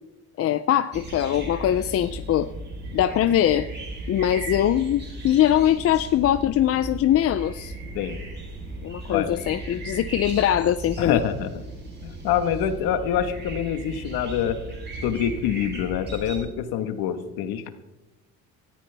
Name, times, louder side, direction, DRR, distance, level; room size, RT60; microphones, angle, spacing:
voice 1, 0.4-2.5 2.9-3.7 4.1-7.7 8.8-11.2, left 11 dB, 40° left, 12 dB, 0.4 m, -22 dB
sound 1, 0.9-16.5, right 2 dB, 30° right, 3.9 m, -36 dB
voice 2, 9.0-9.4 11.0-11.6 12.0-14.6 15.0-17.7, left 9 dB, 90° left, 9 dB, 1.4 m, -26 dB
18.0 x 14.0 x 3.4 m, 0.97 s
cardioid pair, 145°, 36 cm